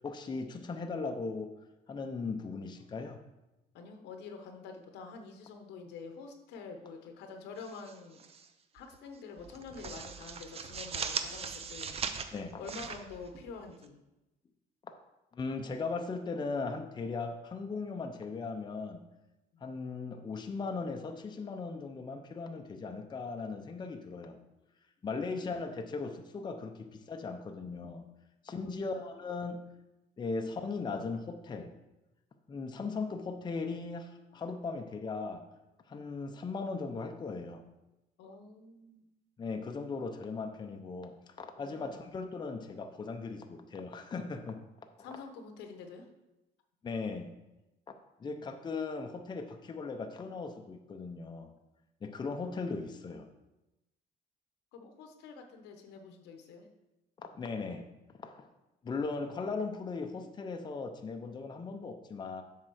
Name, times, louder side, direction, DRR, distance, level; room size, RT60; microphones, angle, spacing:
voice 1, 0.0-1.6 1.9-3.2 12.3-12.6 15.3-19.0 19.6-24.4 25.0-28.0 28.4-29.6 30.2-31.7 32.5-35.4 35.9-37.6 39.4-44.6 46.8-47.3 48.2-51.5 52.0-53.3 57.2-57.9 58.2-58.5 58.8-62.4, left 4 dB, 25° left, 5 dB, 0.7 m, -38 dB
voice 2, 3.7-8.2 8.7-12.0 12.6-14.0 19.5-19.6 28.6-28.8 34.3-34.4 38.2-39.1 41.6-41.8 45.0-46.1 48.2-48.5 54.7-56.7, left 4 dB, 85° left, 5 dB, 1.1 m, -47 dB
sound 1, 7.6-8.5 8.8-9.0 9.4-13.9, right 6 dB, 35° right, 0.6 m, -39 dB
7.4 x 3.7 x 6.4 m, 0.97 s
cardioid pair, 110°, 17 cm